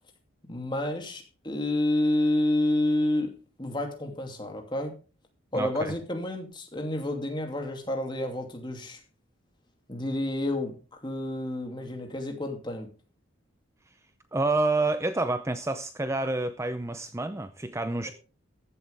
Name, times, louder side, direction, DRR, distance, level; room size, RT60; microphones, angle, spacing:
voice 1, 0.5-4.9 5.5-9.0 9.9-10.8 11.0-12.9, left 1 dB, 25° left, 2.7 m, -29 dB
voice 2, 5.5-5.9 14.3-18.1, right 2 dB, 15° right, 0.5 m, -28 dB
14.5 x 11.5 x 3.5 m
head